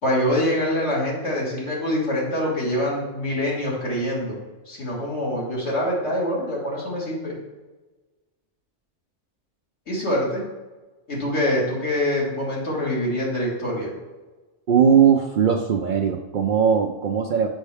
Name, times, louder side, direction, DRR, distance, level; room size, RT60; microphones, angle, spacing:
voice 1, 0.0-4.4 4.7-7.4 9.9-10.4 11.1-13.9, left 1 dB, 70° left, -5 dB, 2.3 m, -25 dB
voice 2, 14.7-17.5, right 7 dB, 60° right, 4 dB, 0.5 m, -19 dB
6.4 x 5.4 x 3.4 m, 1.2 s
omnidirectional pair, 1.2 m